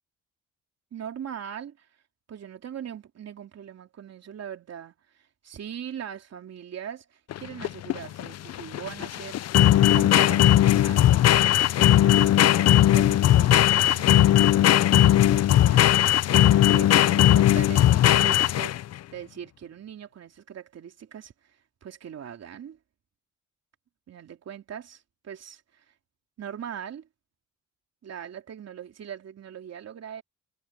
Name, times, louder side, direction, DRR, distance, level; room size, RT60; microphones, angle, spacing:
voice 1, 0.9-1.9 2.3-9.4 9.9-11.2 11.7-18.8 19.1-22.8 24.1-25.8 26.4-27.1 28.0-30.2, right 9 dB, 55° right, 3.3 m, -41 dB
sound 1, 7.3-18.9, left 12 dB, 55° left, 0.6 m, -18 dB
cardioid pair, 90°, 30 cm